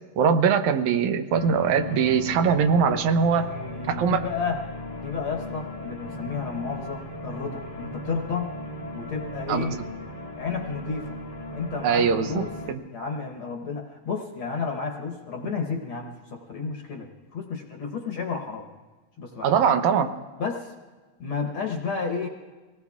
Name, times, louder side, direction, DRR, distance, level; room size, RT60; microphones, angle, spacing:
voice 1, 0.2-3.5 3.9-4.3 9.5-9.6 11.8-12.4 12.7-12.8 19.4-20.1, right 6 dB, 80° right, 7 dB, 2.1 m, -21 dB
sound 1, 1.3-12.7, left 1 dB, 30° left, 1.1 m, -37 dB
voice 2, 3.3-4.6 5.0-8.5 8.9-9.8 10.3-11.2 11.5-12.5 12.9-18.7 19.2-19.6 20.4-20.7 21.2-22.3, left 5 dB, 60° left, 1 dB, 1.5 m, -32 dB
24.5 x 18.5 x 2.4 m, 1.3 s
omnidirectional pair, 3.4 m